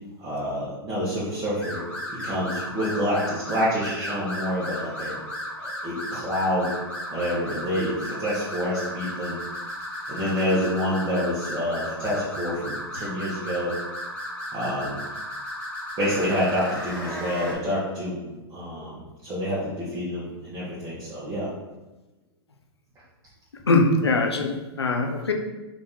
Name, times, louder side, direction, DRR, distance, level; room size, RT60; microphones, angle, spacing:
voice 1, 0.2-1.8 2.1-5.2 5.6-6.7 7.1-9.4 10.1-13.7 14.5-15.0 16.0-21.5, equal, 25° right, -8 dB, 1.2 m, -28 dB
sound 1, 1.6-17.5, equal, 10° left, 1.4 m, -34 dB
voice 2, 23.7-25.3, left 3 dB, 90° left, 3 dB, 0.6 m, -22 dB
3.6 x 2.7 x 3.8 m, 1.1 s
hypercardioid pair, 105°, 13 cm